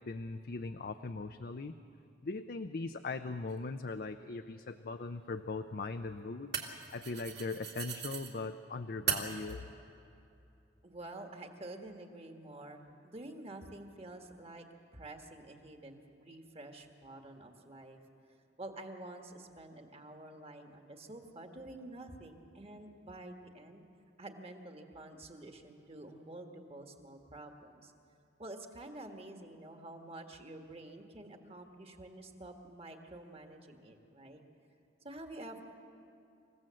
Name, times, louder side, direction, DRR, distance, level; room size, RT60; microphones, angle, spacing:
voice 1, 0.0-1.7 2.2-6.6 6.9-9.6, left 3 dB, 50° left, 8 dB, 0.6 m, -40 dB
sound 1, 3.5-3.6 5.2-8.3 9.1-9.5, right 8 dB, 60° right, 2.3 m, -39 dB
voice 2, 10.8-14.6 14.9-18.0 18.6-23.8 24.2-27.9 28.4-34.4 35.0-35.6, right 2 dB, 30° right, 4 dB, 1.6 m, -49 dB
27.0 x 15.5 x 7.6 m, 2.7 s
head